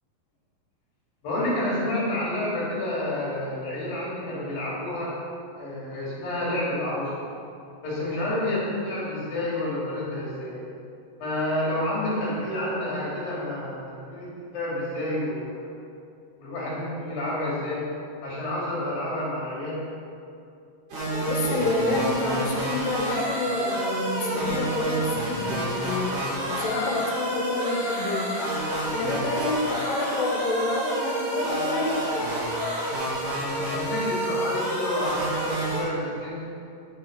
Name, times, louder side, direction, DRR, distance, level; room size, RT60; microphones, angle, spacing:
voice 1, 1.2-5.1 5.6-7.1 7.8-10.6 11.2-15.7 16.4-17.8 18.2-19.8 33.7-36.4, left 1 dB, 65° left, -7 dB, 4.2 m, -29 dB
sound 1, 20.9-35.8, right 1 dB, 50° right, 3.5 m, -29 dB
voice 2, 21.3-26.2 26.5-28.4 28.9-32.0, left 2 dB, 85° left, -1 dB, 3.3 m, -28 dB
9.4 x 6.7 x 5.2 m, 2.5 s
omnidirectional pair, 4.6 m